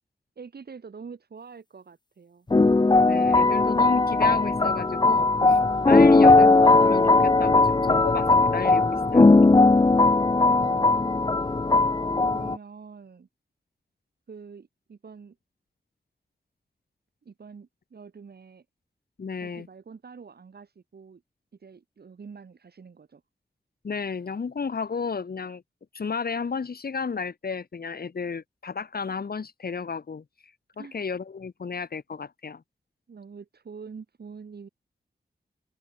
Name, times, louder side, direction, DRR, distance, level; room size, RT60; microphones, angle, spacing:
voice 1, 0.4-2.5 10.3-11.1 12.3-13.3 14.3-15.4 17.3-18.6 19.4-21.2 21.6-23.2 30.8-31.0 33.1-34.7, right 5 dB, 70° right, 5.4 m, -45 dB
sound 1, 2.5-12.6, left 3 dB, 25° left, 0.9 m, -18 dB
voice 2, 3.0-5.6 5.9-9.3 19.2-19.7 23.8-25.6 25.9-30.2 30.8-32.6, left 5 dB, 65° left, 3.0 m, -33 dB
open air
cardioid pair, 55°, 17 cm